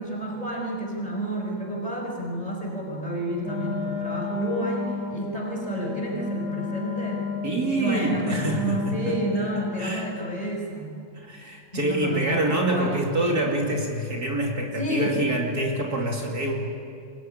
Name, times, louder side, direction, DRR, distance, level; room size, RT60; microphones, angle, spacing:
voice 1, 0.0-7.2 7.7-10.9 11.7-13.0 14.8-15.2, right 1 dB, 20° left, -1 dB, 5.5 m, -30 dB
Wind instrument woodwind instrument, 3.4-10.0, left 4 dB, 60° left, 6.1 m, -32 dB
voice 2, 7.4-9.2 9.8-10.1 11.1-16.5, right 1 dB, 60° right, 0 dB, 3.2 m, -26 dB
24.0 x 20.5 x 9.9 m, 2.4 s
omnidirectional pair, 1.9 m